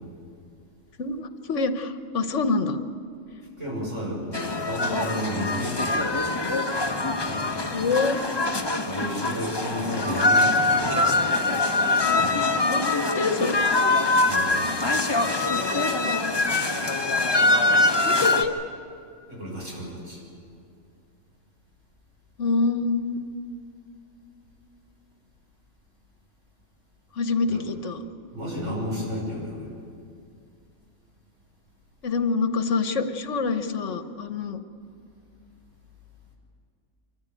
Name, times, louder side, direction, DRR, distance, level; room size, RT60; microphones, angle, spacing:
voice 1, 1.0-2.8 7.7-8.2 12.6-13.6 18.0-18.5 22.4-23.3 27.1-28.0 32.0-34.6, left 4 dB, 70° left, 8 dB, 1.5 m, -26 dB
voice 2, 3.6-6.3 8.8-10.9 14.2-14.7 19.3-20.2 27.5-27.7 28.3-29.7, equal, 75° right, -3 dB, 6.6 m, -32 dB
sound 1, 4.3-18.4, left 2 dB, 20° left, 1.1 m, -23 dB
25.0 x 14.5 x 9.2 m, 2.4 s
omnidirectional pair, 1.3 m